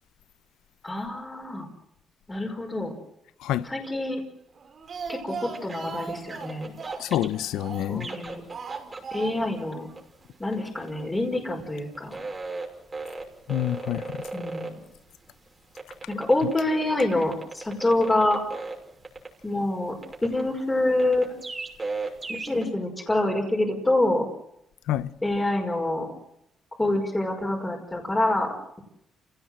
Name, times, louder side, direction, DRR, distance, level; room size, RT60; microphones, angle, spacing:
voice 1, 0.8-1.7 2.3-2.9 3.6-4.2 5.1-6.7 7.9-8.4 9.1-9.9 10.4-12.2 14.3-14.8 16.1-18.4 19.4-21.3 22.3-24.3 25.2-26.1 26.8-28.8, left 1 dB, 15° left, 5.2 m, -26 dB
voice 2, 3.4-3.7 7.0-8.1 13.5-14.3 24.9-25.1, left 12 dB, 90° left, 0.8 m, -27 dB
Speech, 4.6-8.1 8.5-9.7 9.9-10.0 10.3-10.4, right 5 dB, 50° right, 2.6 m, -38 dB
sound 1, 5.5-22.7, right 3 dB, 25° right, 6.0 m, -37 dB
28.5 x 17.5 x 7.8 m
cardioid pair, 90°, 0 cm